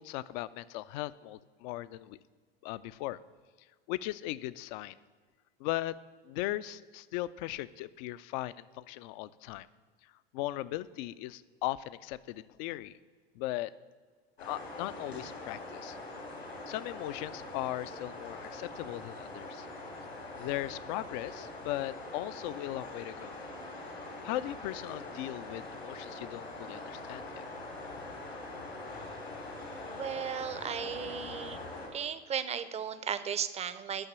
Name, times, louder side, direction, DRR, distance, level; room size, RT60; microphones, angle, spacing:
voice 1, 0.0-2.2 2.6-3.2 3.9-4.9 5.6-5.9 6.3-9.7 10.3-12.9 13.4-13.7 14.4-16.0 16.7-19.7 20.4-23.3 24.2-27.4, left 16 dB, 50° left, 17 dB, 0.5 m, -38 dB
sound 1, 14.4-31.9, left 2 dB, 90° left, 3.1 m, -43 dB
voice 2, 29.9-31.6 31.9-34.1, right 8 dB, 20° right, 13 dB, 0.6 m, -35 dB
9.1 x 5.9 x 8.0 m, 1.5 s
hypercardioid pair, 85°, 31 cm